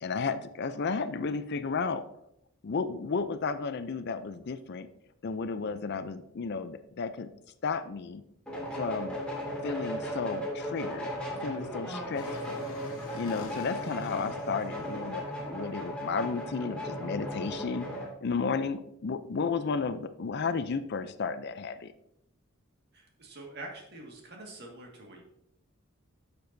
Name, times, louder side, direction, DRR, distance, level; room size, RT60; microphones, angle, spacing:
voice 1, 0.0-2.0 2.6-4.9 5.2-7.3 7.6-8.2 8.7-9.2 9.6-11.1 11.4-12.6 13.1-17.9 18.2-21.9, left 5 dB, 50° left, 12 dB, 0.5 m, -33 dB
sound 1, 8.5-18.1, equal, 5° left, 2.3 m, -36 dB
sound 2, 12.1-14.9, left 2 dB, 75° left, 1.2 m, -45 dB
voice 2, 22.9-25.2, right 2 dB, 50° right, 1 dB, 1.9 m, -45 dB
10.0 x 6.8 x 2.7 m, 0.77 s
head